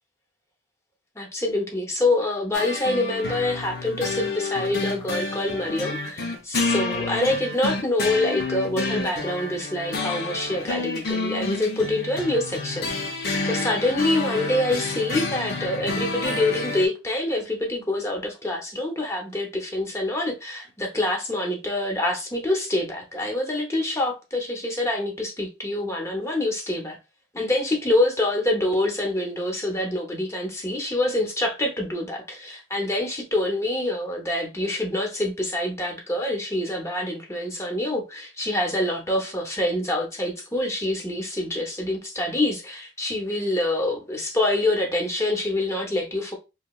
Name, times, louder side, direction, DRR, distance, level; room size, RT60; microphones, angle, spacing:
voice 1, 1.2-12.9 13.5-27.0 27.3-46.3, left 1 dB, 15° left, 0.6 m, -26 dB
sound 1, 2.5-16.9, left 3 dB, 50° left, 0.6 m, -29 dB
3.0 x 2.8 x 2.2 m
head